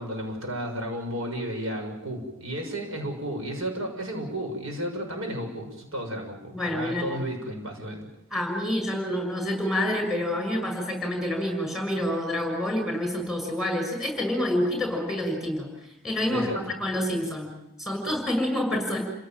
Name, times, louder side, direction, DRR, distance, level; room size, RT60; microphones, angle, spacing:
voice 1, 0.0-8.1 16.3-16.6, right 1 dB, 80° right, 3 dB, 6.8 m, -33 dB
voice 2, 6.5-7.1 8.3-15.7 16.0-16.5 16.8-17.5 17.8-19.0, left 1 dB, ahead, 3 dB, 6.5 m, -27 dB
29.5 x 17.5 x 9.2 m, 0.85 s
head